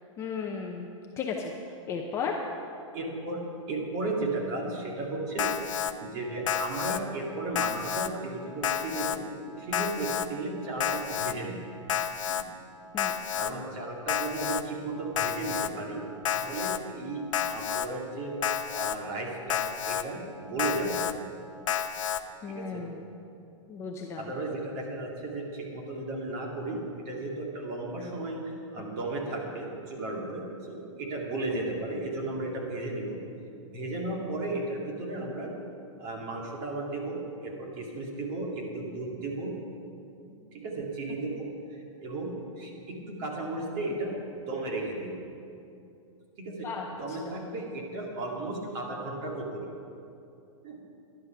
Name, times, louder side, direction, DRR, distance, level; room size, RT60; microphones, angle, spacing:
voice 1, 0.2-0.9 1.2-1.5 1.9-2.4 12.9-13.2 22.4-23.0 23.7-24.3 46.6-47.4, left 5 dB, 15° left, 1 dB, 0.6 m, -35 dB
voice 2, 2.9-3.4 3.7-5.5 6.0-11.6 12.3-12.4 13.3-16.0 16.3-18.4 18.7-21.1 22.5-22.8 24.2-33.2 33.7-35.5 36.0-39.5 40.3-45.1 46.4-46.7 47.0-49.7 50.6-50.8, right 2 dB, 30° right, -1 dB, 2.2 m, -35 dB
Alarm, 5.4-5.9 6.5-7.0 7.5-8.1 8.6-9.2 9.7-10.3 10.8-11.3 11.9-12.4 13.0-13.5 14.1-14.6 15.2-15.7 16.2-16.8 17.3-17.9 18.4-19.0 19.5-20.0 20.6-21.1 21.7-22.2, left 9 dB, 70° left, 0.7 m, -30 dB
11.5 x 11.0 x 5.9 m, 2.6 s
hypercardioid pair, 160°, 17 cm